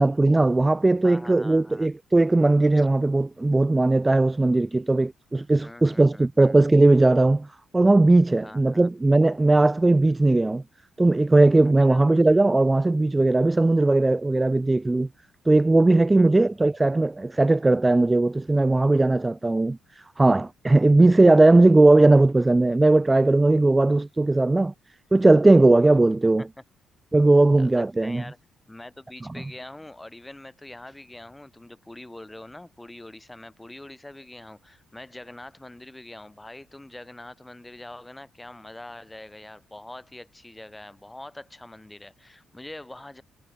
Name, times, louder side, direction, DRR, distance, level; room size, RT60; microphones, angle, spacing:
voice 1, 0.0-7.5 7.7-10.6 11.0-15.1 15.5-24.7 25.1-26.4 27.1-28.2, right 2 dB, 15° right, 0.4 m, -18 dB
voice 2, 1.0-1.9 2.7-2.9 5.6-6.6 8.4-8.9 11.9-12.2 16.1-16.7 26.4-26.5 27.6-28.4 28.7-43.2, left 1 dB, 10° left, 1.3 m, -44 dB
cardioid pair, 90°, 0 cm